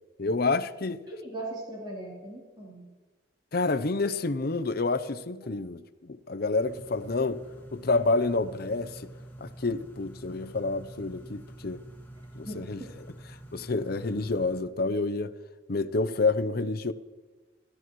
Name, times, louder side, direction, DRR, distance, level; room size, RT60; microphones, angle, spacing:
voice 1, 0.2-1.0 3.5-7.4 7.7-9.0 9.4-11.8 12.4-12.8 13.5-15.3 15.7-16.9, left 3 dB, 55° left, 0.7 m, -28 dB
voice 2, 1.1-2.9 5.4-5.5 12.4-12.9, right 1 dB, 25° right, 3.4 m, -39 dB
sound 1, 6.6-14.6, right 1 dB, 10° left, 1.9 m, -47 dB
28.5 x 13.5 x 3.2 m
head